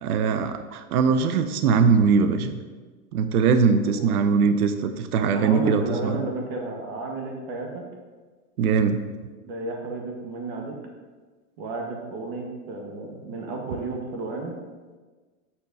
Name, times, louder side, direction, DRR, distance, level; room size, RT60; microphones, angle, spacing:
voice 1, 0.0-2.6 3.1-6.2 8.6-9.0, right 5 dB, 75° right, 8 dB, 0.8 m, -21 dB
voice 2, 3.9-4.2 5.2-7.8 9.4-10.8 11.6-14.5, right 2 dB, 45° right, 1 dB, 1.7 m, -32 dB
7.2 x 4.5 x 5.3 m, 1.4 s
supercardioid pair, 155°, 44 cm